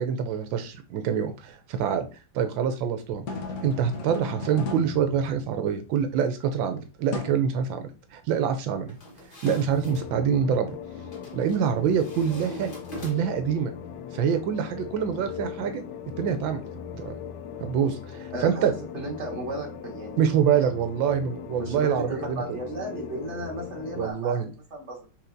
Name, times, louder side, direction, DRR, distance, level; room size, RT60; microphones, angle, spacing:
voice 1, 0.0-2.1 2.3-3.2 3.6-8.9 9.4-10.8 11.3-12.7 13.0-13.7 14.1-15.8 16.2-16.6 16.9-17.1 17.6-18.7 20.2-22.6 24.0-24.5, right 8 dB, 85° right, 8 dB, 1.4 m, -25 dB
sound 1, 3.1-5.9 7.1-7.5 9.5-10.5, left 3 dB, 55° left, 0.9 m, -37 dB
sound 2, 8.9-10.1 11.1-11.6 12.0-13.5, equal, 30° left, 1.5 m, -42 dB
sound 3, 9.8-24.1, left 8 dB, 75° left, 1.2 m, -39 dB
voice 2, 18.3-20.2 20.5-20.6 21.6-24.4 24.7-25.1, right 1 dB, 40° right, -2 dB, 1.8 m, -34 dB
5.7 x 3.6 x 2.6 m, 0.32 s
omnidirectional pair, 2.1 m